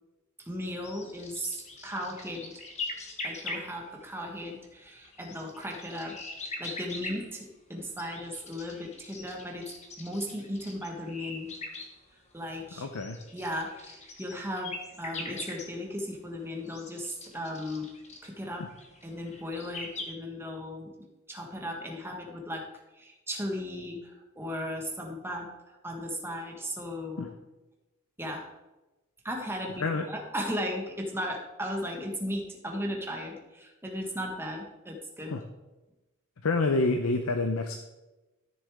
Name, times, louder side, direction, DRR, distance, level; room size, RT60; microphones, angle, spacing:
voice 1, 0.4-2.6 3.2-6.2 6.6-9.7 10.0-11.5 12.3-12.9 13.3-17.9 18.2-18.7 19.0-22.7 22.9-27.3 28.2-28.5 29.2-35.4, equal, 10° right, 1 dB, 1.4 m, -36 dB
sound 1, 0.8-4.2 4.9-7.3 8.0-11.9 12.3-12.4 12.9-15.7 16.1-20.0, left 3 dB, 30° left, 1.4 m, -42 dB
voice 2, 12.8-13.2 27.2-27.3 29.8-30.1 35.3-35.4 36.4-37.8, left 3 dB, 70° left, 6 dB, 0.7 m, -27 dB
13.5 x 6.7 x 3.6 m, 1.1 s
head